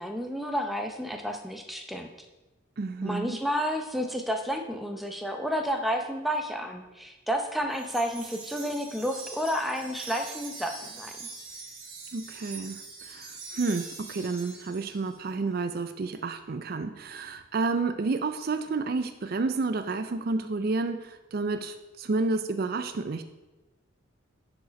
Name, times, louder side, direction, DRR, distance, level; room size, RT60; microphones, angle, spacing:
voice 1, 0.0-2.1 3.0-11.3, equal, ahead, 4 dB, 0.6 m, -31 dB
voice 2, 2.8-3.4 12.1-23.2, right 3 dB, 45° right, 9 dB, 0.4 m, -30 dB
Wind chime, 7.7-15.2, right 4 dB, 90° right, 1.6 m, -43 dB
10.5 x 4.9 x 5.2 m, 1.1 s
head